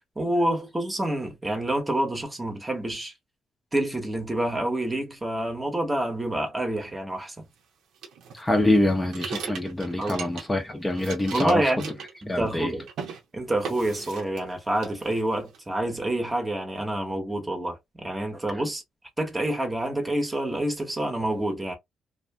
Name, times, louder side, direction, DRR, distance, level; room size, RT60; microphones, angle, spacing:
voice 1, 0.2-3.1 3.7-7.5 10.0-10.2 11.3-12.9 13.3-18.8 19.2-21.8, right 1 dB, 20° right, 1.0 m, -28 dB
sound 1, 8.0-10.6 10.9-12.6 12.9-13.2 13.6-14.5 14.8-15.6, right 6 dB, 80° right, 0.8 m, -38 dB
voice 2, 8.3-11.7 12.3-12.7, left 1 dB, 15° left, 0.6 m, -25 dB
2.6 x 2.5 x 2.2 m
cardioid pair, 90°, 0 cm